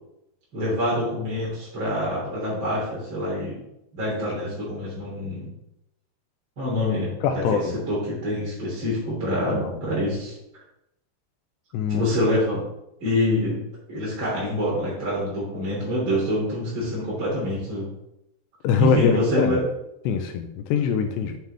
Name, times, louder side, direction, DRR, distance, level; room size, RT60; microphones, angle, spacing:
voice 1, 0.5-3.6 3.9-5.5 6.6-7.2 7.5-10.6 11.9-12.6 13.0-13.6 13.9-17.9 18.8-19.6, equal, 30° right, -7 dB, 2.6 m, -26 dB
voice 2, 7.2-7.8 9.5-9.7 11.7-12.1 18.6-19.6 20.1-21.4, left 7 dB, 85° left, 6 dB, 2.6 m, -23 dB
9.1 x 7.4 x 3.3 m, 0.85 s
omnidirectional pair, 5.5 m